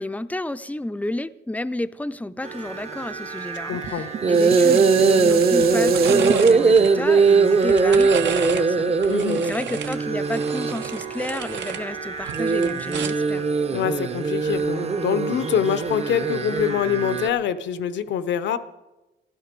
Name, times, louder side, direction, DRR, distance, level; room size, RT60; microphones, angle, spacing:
voice 1, 0.0-13.4, left 1 dB, 10° left, 13 dB, 0.5 m, -31 dB
sound 1, 2.4-17.3, right 4 dB, 35° right, 0.8 m, -21 dB
voice 2, 3.7-4.1 9.1-9.4 13.7-18.6, left 8 dB, 75° left, 14 dB, 0.8 m, -25 dB
Dishes pots and pans, 3.7-9.0 9.6-9.7, right 10 dB, 55° right, 0.4 m, -33 dB
sound 2, 4.6-4.9 5.2-6.9 7.5-8.7 9.0-11.8 12.2-13.3 14.5-14.7, right 7 dB, 75° right, 1.1 m, -32 dB
15.5 x 12.0 x 5.2 m, 1.0 s
cardioid pair, 85°, 19 cm